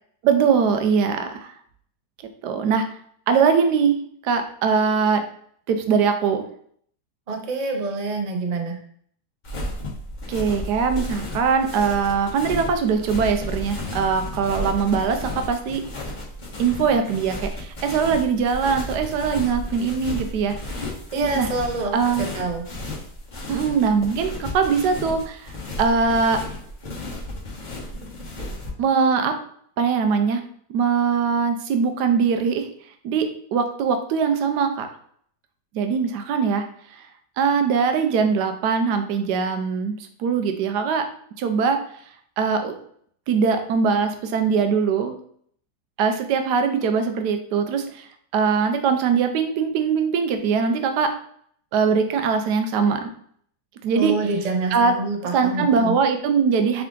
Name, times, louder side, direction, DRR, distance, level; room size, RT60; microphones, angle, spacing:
voice 1, 0.2-1.5 2.4-2.8 3.3-4.0 4.2-5.2 5.7-6.4 10.3-15.8 16.6-20.8 21.3-21.5 21.9-22.3 23.5-25.5 25.8-26.4 28.8-29.3 29.8-30.4 30.7-32.7 33.0-34.9 35.7-36.6 36.9-37.1 37.4-41.0 41.4-41.8 42.4-42.7 43.3-45.1 46.0-48.1 48.3-51.1 51.7-53.1 53.8-54.2 54.7-54.9 55.3-56.8, right 5 dB, 90° right, 6 dB, 1.2 m, -21 dB
voice 2, 7.3-8.8 21.1-21.9 22.2-22.6 53.9-55.9, right 3 dB, 60° right, 3 dB, 0.4 m, -26 dB
sound 1, 9.4-28.7, left 1 dB, 35° left, 1.0 m, -33 dB
3.6 x 3.4 x 3.7 m, 0.62 s
omnidirectional pair, 1.7 m